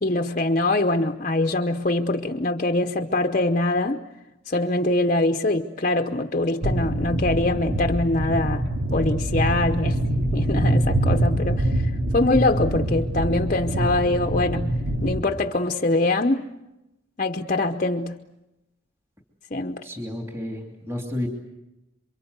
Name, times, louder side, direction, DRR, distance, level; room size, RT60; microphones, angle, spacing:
voice 1, 0.0-4.0 4.5-8.6 8.9-16.4 17.2-18.3 19.5-19.8, left 2 dB, 40° left, 5 dB, 0.9 m, -23 dB
sound 1, 6.6-15.2, right 1 dB, 80° right, 2.9 m, -24 dB
voice 2, 19.8-21.3, left 1 dB, 15° right, 2 dB, 2.9 m, -31 dB
28.0 x 24.0 x 8.2 m, 0.96 s
head